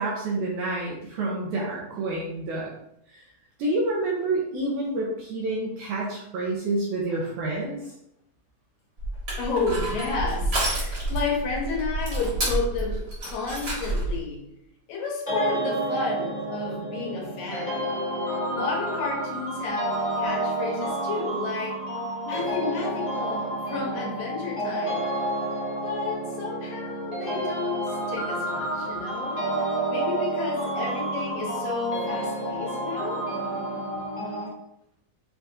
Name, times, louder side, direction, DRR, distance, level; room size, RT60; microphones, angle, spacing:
voice 1, 0.0-2.7 3.1-3.2 3.6-7.8, right 2 dB, 75° right, -3 dB, 1.9 m, -28 dB
Crushing, 9.0-14.2, right 1 dB, 45° right, 1.5 m, -29 dB
voice 2, 9.4-14.5 14.9-17.9 18.3-21.9 22.3-25.1 25.8-29.5 29.9-33.3, left 4 dB, 80° left, -1 dB, 2.5 m, -31 dB
sound 1, 15.3-34.5, right 1 dB, 55° left, 0.7 m, -30 dB
6.8 x 2.4 x 2.6 m, 0.76 s
omnidirectional pair, 4.1 m